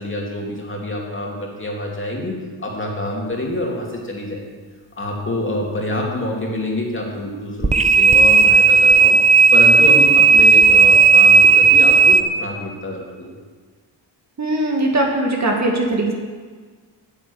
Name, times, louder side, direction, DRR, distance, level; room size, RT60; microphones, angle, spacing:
voice 1, 0.0-4.5 5.0-9.2 9.5-13.3, left 1 dB, 25° left, -1 dB, 2.7 m, -26 dB
sound 1, 7.6-12.2, right 5 dB, 15° right, 0.7 m, -11 dB
voice 2, 14.4-16.1, right 1 dB, 35° right, 0 dB, 2.0 m, -20 dB
9.6 x 7.9 x 8.7 m, 1.5 s
cardioid pair, 110°, 45 cm